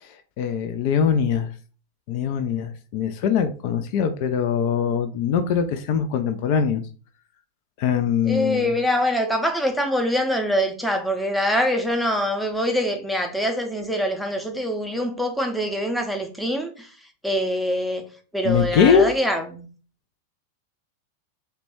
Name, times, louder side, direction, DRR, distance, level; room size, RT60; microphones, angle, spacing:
voice 1, 0.0-1.5 2.1-6.8 7.8-8.7 18.4-19.1, left 7 dB, 45° left, 0.3 m, -22 dB
voice 2, 8.2-16.9 17.2-18.0 18.3-19.7, equal, ahead, 0.6 m, -24 dB
2.9 x 2.1 x 3.0 m
figure-of-eight pair, 90°, 0 cm